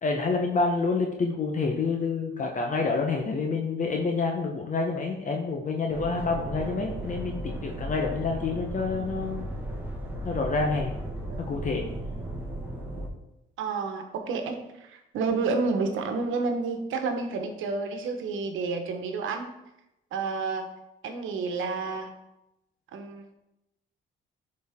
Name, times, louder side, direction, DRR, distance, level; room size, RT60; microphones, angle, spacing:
voice 1, 0.0-9.5 10.2-10.9 11.4-11.9, left 4 dB, 40° left, 2 dB, 1.1 m, -28 dB
sound 1, 5.9-13.1, right 1 dB, 10° right, 1.6 m, -35 dB
voice 2, 13.6-19.5 20.1-20.7 21.0-22.1 22.9-23.2, right 4 dB, 80° right, 5 dB, 1.2 m, -30 dB
11.0 x 4.5 x 3.6 m, 0.91 s
cardioid pair, 90°, 20 cm